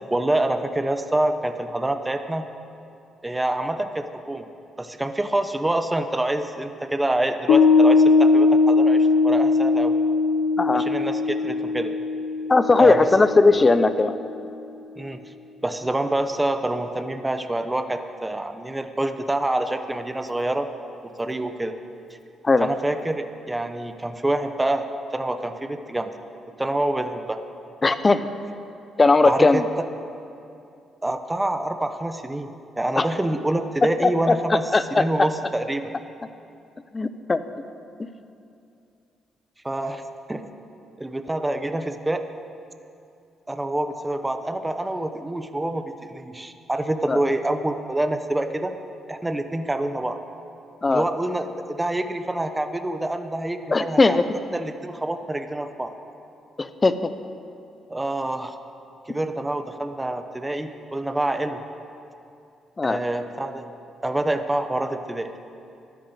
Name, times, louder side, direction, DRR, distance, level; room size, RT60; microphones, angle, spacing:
voice 1, 0.1-2.5 3.2-4.5 4.8-10.0 10.7-11.9 12.8-13.1 15.0-15.3 15.6-20.7 21.0-21.7 22.6-24.9 25.1-26.1 26.6-27.4 29.2-29.6 31.0-32.5 32.8-35.9 39.6-40.0 40.3-40.5 41.0-42.3 43.5-48.8 49.1-50.2 50.9-54.2 54.5-55.9 57.9-58.5 59.1-61.6 62.8-63.7 64.0-65.3, right 1 dB, 15° right, 8 dB, 0.9 m, -26 dB
Piano, 7.5-14.2, left 4 dB, 85° left, 0.9 m, -20 dB
voice 2, 12.5-14.2 22.4-22.7 27.8-28.3 29.0-29.7 33.0-33.1 34.0-35.0 36.9-37.4 47.1-47.2 50.8-51.0 53.7-54.4 56.6-57.1 62.8-63.0, left 3 dB, 25° left, 12 dB, 0.7 m, -18 dB
13.0 x 10.5 x 8.2 m, 2.6 s
cardioid pair, 90°, 0 cm